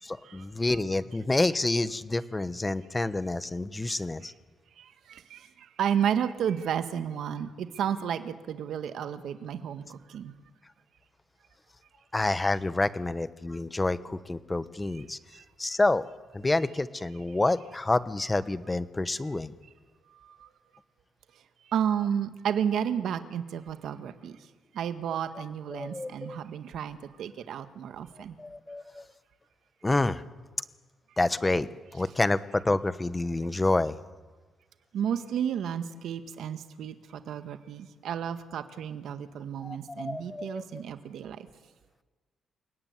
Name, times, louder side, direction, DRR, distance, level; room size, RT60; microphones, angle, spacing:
voice 1, 0.0-4.3 12.1-15.2 15.6-16.1 16.3-19.5 25.7-26.4 28.4-29.0 29.8-30.2 31.2-34.0 39.6-40.8, left 2 dB, 15° left, 14 dB, 1.1 m, -28 dB
voice 2, 4.8-10.3 15.3-15.8 20.1-20.5 21.7-24.4 24.7-28.4 34.9-41.5, right 8 dB, 75° right, 9 dB, 1.8 m, -32 dB
29.5 x 18.0 x 9.7 m, 1.3 s
cardioid pair, 115°, 0 cm